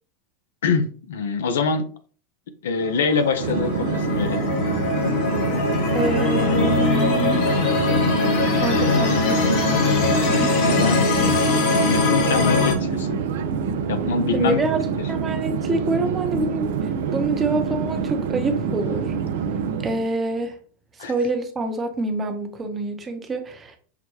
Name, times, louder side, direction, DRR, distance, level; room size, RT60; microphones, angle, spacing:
voice 1, 0.6-1.8 2.6-4.5 10.5-11.1 11.8-13.2 13.9-14.6 21.0-21.1, left 4 dB, 80° left, 9 dB, 0.6 m, -24 dB
sound 1, 2.8-12.7, left 4 dB, 65° left, 1.0 m, -21 dB
Conversation / Chatter / Fixed-wing aircraft airplane, 3.4-20.1, right 6 dB, 75° right, 0.4 m, -26 dB
voice 2, 5.9-7.6 8.6-10.6 14.3-19.1 19.8-20.6 21.0-23.8, right 2 dB, 25° right, 6 dB, 0.8 m, -26 dB
5.8 x 2.2 x 3.1 m, 0.42 s
hypercardioid pair, 100°, 0 cm